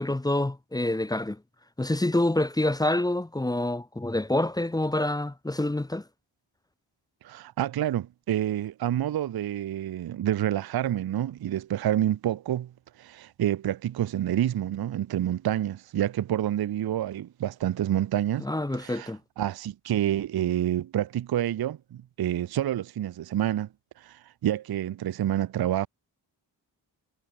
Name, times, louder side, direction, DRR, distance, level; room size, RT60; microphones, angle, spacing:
voice 1, 0.0-1.4 1.8-6.0 18.4-19.2, left 1 dB, 10° left, 0.5 m, -27 dB
voice 2, 7.2-12.7 13.0-18.5 18.7-19.1 19.4-23.7 24.0-25.9, right 11 dB, 50° right, 0.5 m, -28 dB
cardioid pair, 45°, 48 cm